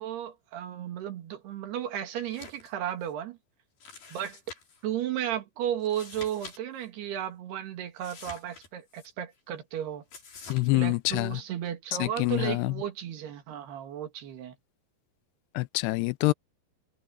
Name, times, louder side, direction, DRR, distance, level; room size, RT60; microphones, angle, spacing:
voice 1, 0.0-3.4 4.1-4.4 4.8-10.0 10.7-14.6, right 10 dB, 80° right, 4.1 m, -34 dB
sound 1, 2.2-2.7 3.0-3.1 3.8-4.8 5.8-6.6 6.8-6.9 8.0-9.1 10.1-10.7, left 4 dB, 65° left, 7.8 m, -47 dB
voice 2, 10.5-11.4 12.0-12.8 15.5-16.3, left 22 dB, 90° left, 2.7 m, -26 dB
omnidirectional pair, 4.6 m